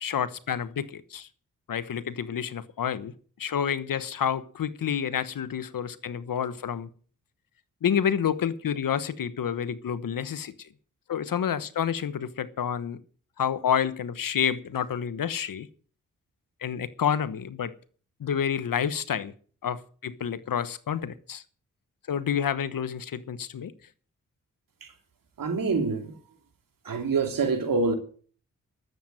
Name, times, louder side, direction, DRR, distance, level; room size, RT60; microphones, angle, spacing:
voice 1, 0.0-1.3 1.7-3.1 3.4-6.9 7.8-10.7 11.1-13.0 13.4-15.7 16.6-17.7 18.2-19.3 19.6-21.4 22.1-23.7, left 8 dB, 70° left, 1.1 m, -29 dB
voice 2, 25.4-26.1 26.8-27.9, right 4 dB, 70° right, 3.0 m, -26 dB
12.5 x 7.9 x 9.2 m
supercardioid pair, 45°, 35 cm